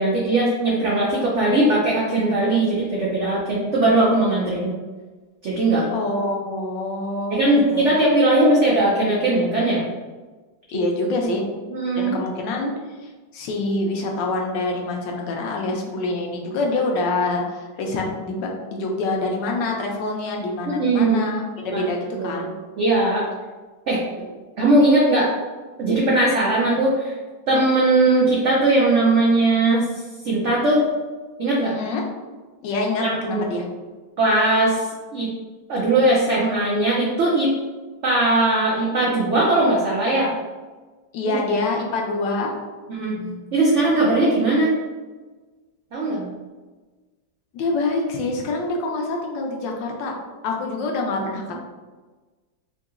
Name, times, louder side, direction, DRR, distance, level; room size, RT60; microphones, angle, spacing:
voice 1, 0.0-4.7 5.4-5.9 7.3-9.8 11.7-12.2 20.7-21.2 21.7-21.8 22.1-22.4 22.8-23.3 23.9-24.0 24.6-25.3 25.8-27.2 27.5-29.8 30.2-30.8 31.4-31.7 33.0-33.4 34.2-34.9 35.1-35.3 35.7-37.5 38.0-40.3 41.3-41.4 42.9-44.7 45.9-46.3 51.5-51.6, right 2 dB, 90° right, -5 dB, 0.6 m, -19 dB
voice 2, 5.9-7.9 10.7-11.5 12.0-12.7 13.0-22.5 31.6-32.0 32.6-33.7 41.1-42.5 47.5-50.1 50.4-51.6, left 2 dB, 75° left, 0 dB, 1.2 m, -26 dB
3.9 x 2.7 x 2.4 m, 1.3 s
omnidirectional pair, 2.0 m